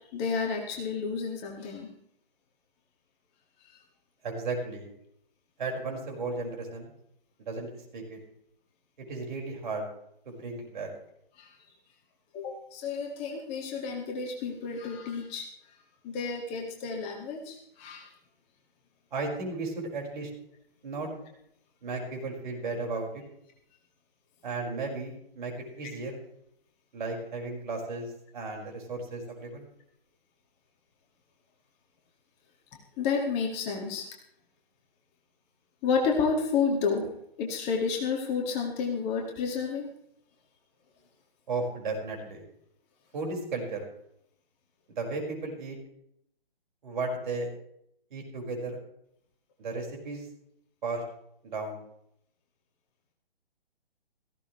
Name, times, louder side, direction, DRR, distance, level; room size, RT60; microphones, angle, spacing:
voice 1, 0.1-1.9 11.4-11.6 12.3-15.5 16.0-18.1 33.0-34.1 35.8-37.1 37.4-39.9, left 5 dB, 20° left, 1 dB, 2.0 m, -30 dB
voice 2, 4.2-4.9 5.6-6.9 7.5-7.7 7.9-8.2 9.1-9.9 10.3-10.9 19.1-20.3 20.8-21.1 21.8-23.2 24.4-26.2 26.9-29.7 41.5-42.4 43.1-43.8 44.9-45.8 46.8-47.5 48.1-48.8 49.6-50.2 50.8-51.0 51.4-51.8, right 3 dB, 50° right, 1 dB, 5.4 m, -34 dB
17.0 x 15.5 x 3.2 m, 0.72 s
figure-of-eight pair, 135°, 30 cm